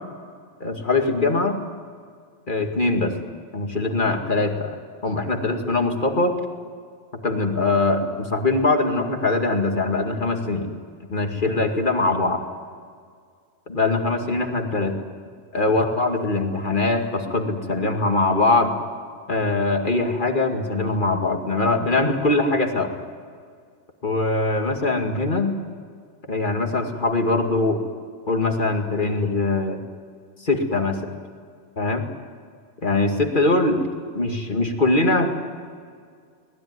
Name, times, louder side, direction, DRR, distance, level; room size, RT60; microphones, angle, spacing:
voice 1, 0.6-1.6 2.5-3.1 3.5-4.8 5.0-6.4 7.2-10.7 11.1-12.4 13.7-15.0 15.5-18.7 19.3-22.9 24.0-25.6 26.3-27.8 28.3-29.8 30.4-31.1 31.8-32.1 32.8-33.8 34.1-35.3, left 2 dB, 35° left, 3 dB, 2.3 m, -22 dB
24.5 x 20.0 x 9.7 m, 2.1 s
omnidirectional pair, 1.4 m